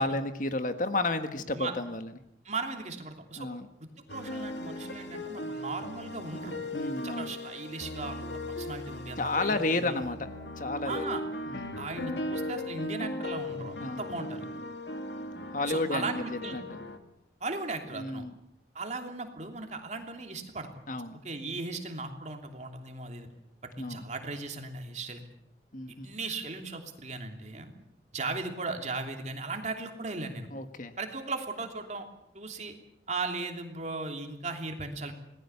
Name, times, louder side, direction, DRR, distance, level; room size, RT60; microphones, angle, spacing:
voice 1, 0.0-2.1 3.4-3.7 6.7-7.4 9.2-10.3 10.6-11.1 11.5-11.8 13.8-14.0 15.5-16.8 17.9-18.4 20.9-21.2 23.8-24.1 25.7-26.1 30.5-30.9, left 2 dB, 50° left, 8 dB, 1.6 m, -32 dB
voice 2, 2.4-3.5 4.1-6.6 7.0-10.0 10.8-11.2 11.8-14.5 15.7-16.6 17.4-18.2 18.7-20.7 21.2-23.3 23.6-25.2 26.0-27.7 28.1-30.5 31.0-32.1 32.3-32.7 33.1-35.1, right 3 dB, 40° right, 4 dB, 3.0 m, -37 dB
sound 1, 4.1-17.0, left 1 dB, 85° left, 2.3 m, -38 dB
26.5 x 19.5 x 7.1 m, 0.76 s
head